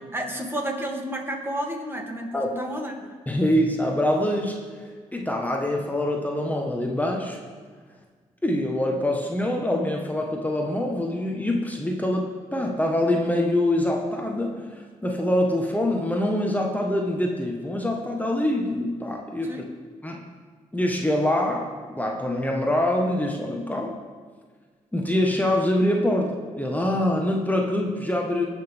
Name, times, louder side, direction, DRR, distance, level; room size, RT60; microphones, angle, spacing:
voice 1, 0.1-3.1 19.4-19.7, right 1 dB, 15° right, 0 dB, 2.7 m, -31 dB
voice 2, 3.3-4.6 5.1-7.4 8.4-19.6 20.0-20.2 20.7-23.9 24.9-28.5, left 1 dB, 10° left, 1 dB, 1.5 m, -25 dB
18.5 x 6.3 x 3.7 m, 1.5 s
supercardioid pair, 45°, 15 cm